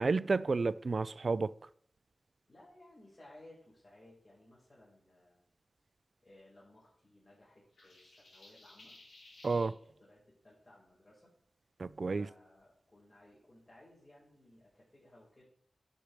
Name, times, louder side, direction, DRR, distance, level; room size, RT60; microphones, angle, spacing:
voice 1, 0.0-1.5 9.4-9.7 11.8-12.3, right 4 dB, 60° right, 0.4 m, -31 dB
voice 2, 2.5-5.4 6.2-9.0 9.7-11.3 12.1-15.4, left 1 dB, 45° left, 4.5 m, -60 dB
sound 1, 7.8-9.7, left 2 dB, 85° left, 3.3 m, -57 dB
10.5 x 5.2 x 6.5 m
wide cardioid pair, 70°, 0 cm